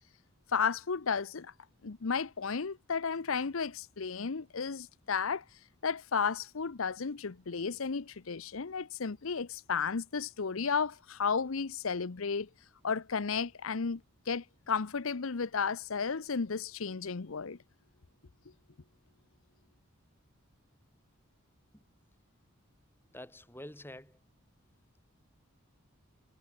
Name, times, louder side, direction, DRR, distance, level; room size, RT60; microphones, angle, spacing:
voice 1, 0.5-1.5 1.8-5.4 5.8-12.5 12.8-14.0 14.3-17.6, left 5 dB, 75° left, 0.8 m, -33 dB
voice 2, 23.1-24.2, left 1 dB, 10° left, 5.5 m, -47 dB
head